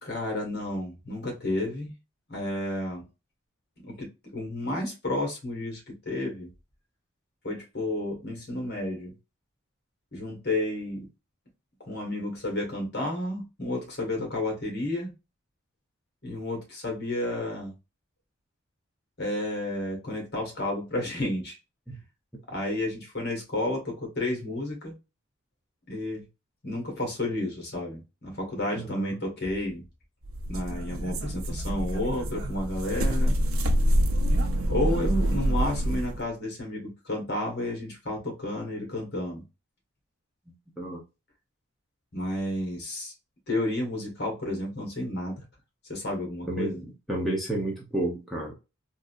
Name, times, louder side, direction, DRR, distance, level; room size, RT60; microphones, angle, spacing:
voice 1, 0.0-1.9 2.3-3.0 3.8-6.5 7.4-9.1 10.1-11.1 11.8-15.1 16.2-17.7 19.2-21.6 22.5-24.9 25.9-26.3 26.6-29.8 30.5-33.4 34.7-39.4 42.1-43.1 43.5-45.4 45.9-46.8, left 1 dB, 50° left, 1.6 m, -31 dB
voice 2, 28.7-29.1 40.8-41.0 46.5-48.5, right 1 dB, ahead, 0.7 m, -31 dB
sound 1, 30.2-36.2, equal, 70° right, 0.6 m, -26 dB
3.7 x 2.7 x 2.4 m
head